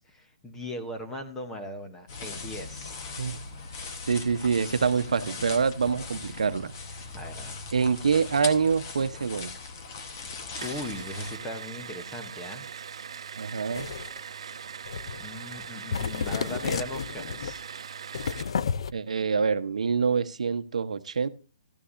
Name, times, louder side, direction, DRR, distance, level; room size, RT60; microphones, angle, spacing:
voice 1, 0.0-3.1 7.1-7.6 10.0-10.3 10.6-12.6 15.2-17.6, left 1 dB, 5° left, 0.7 m, -39 dB
sound 1, 2.1-11.4, left 4 dB, 25° left, 1.0 m, -39 dB
voice 2, 4.1-6.7 7.7-9.5 13.4-13.9 18.9-21.3, right 5 dB, 80° right, 0.7 m, -26 dB
sound 2, 10.6-18.6, right 7 dB, 55° right, 0.4 m, -41 dB
sound 3, 13.7-14.2 14.9-15.3 15.5-15.7 15.9-17.5 18.1-18.9, left 6 dB, 55° left, 0.4 m, -31 dB
14.0 x 9.8 x 2.5 m
hypercardioid pair, 175°, 4 cm